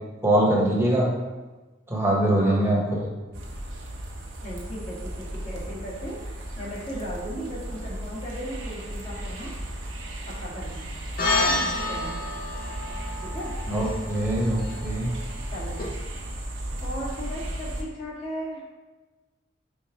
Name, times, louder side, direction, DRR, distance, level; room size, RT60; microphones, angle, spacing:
voice 1, 0.2-1.1 1.9-3.1 13.7-15.1, right 1 dB, 15° right, -4 dB, 1.3 m, -23 dB
voice 2, 2.4-2.8 4.4-9.6 10.3-11.0 11.3-12.3 13.2-13.5 15.5-15.9 16.8-18.6, equal, 35° left, -6 dB, 1.9 m, -37 dB
sound 1, 3.3-17.8, right 1 dB, 70° right, 1.1 m, -35 dB
sound 2, 11.2-15.8, left 2 dB, 50° left, 1.1 m, -30 dB
5.4 x 4.1 x 4.6 m, 1.2 s
head